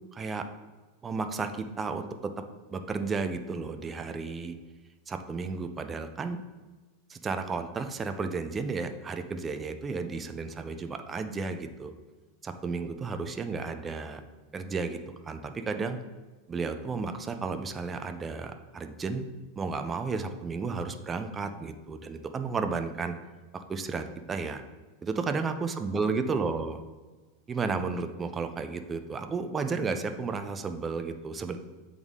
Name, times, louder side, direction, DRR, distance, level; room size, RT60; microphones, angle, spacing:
voice 1, 0.1-0.4 1.0-2.3 2.7-4.6 5.1-6.4 7.1-11.9 12.4-14.2 14.5-16.0 16.5-19.2 19.6-23.1 23.5-24.6 25.0-26.8 27.5-31.6, right 4 dB, 15° right, 7 dB, 0.4 m, -33 dB
8.0 x 3.6 x 3.6 m, 1.3 s
supercardioid pair, 145°, 0 cm